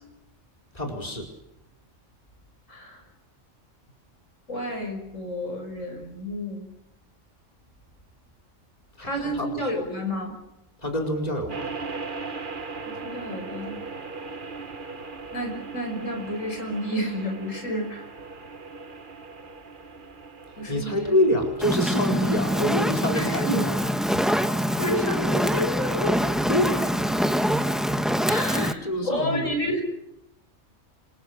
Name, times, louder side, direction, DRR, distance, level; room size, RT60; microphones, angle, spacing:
voice 1, 0.7-1.3 9.0-9.7 10.8-11.7 20.7-23.7 24.1-24.3 26.5-27.0 28.6-29.6, left 1 dB, 30° left, 2 dB, 4.7 m, -26 dB
voice 2, 2.7-3.0 4.5-6.7 9.0-10.3 12.9-13.8 15.3-18.1 20.6-21.1 23.1-23.6 24.8-26.2 28.3-29.8, equal, 80° left, 3 dB, 6.3 m, -30 dB
sound 1, 11.5-26.8, right 4 dB, 40° right, 1.5 m, -40 dB
Fire, 21.6-28.7, equal, ahead, 1.2 m, -24 dB
28.0 x 26.0 x 6.8 m, 0.86 s
omnidirectional pair, 1.3 m